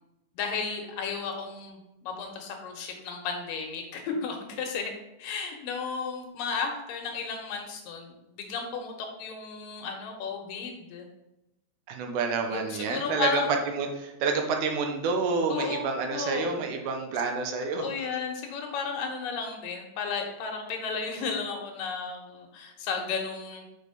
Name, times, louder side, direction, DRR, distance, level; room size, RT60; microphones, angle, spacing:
voice 1, 0.3-4.9 5.2-11.1 12.4-13.5 15.5-15.8 16.1-16.6 17.8-23.7, left 5 dB, 85° left, 3 dB, 2.8 m, -34 dB
voice 2, 11.9-17.9, right 4 dB, 75° right, 4 dB, 2.3 m, -28 dB
6.4 x 5.0 x 5.0 m, 0.93 s
omnidirectional pair, 3.8 m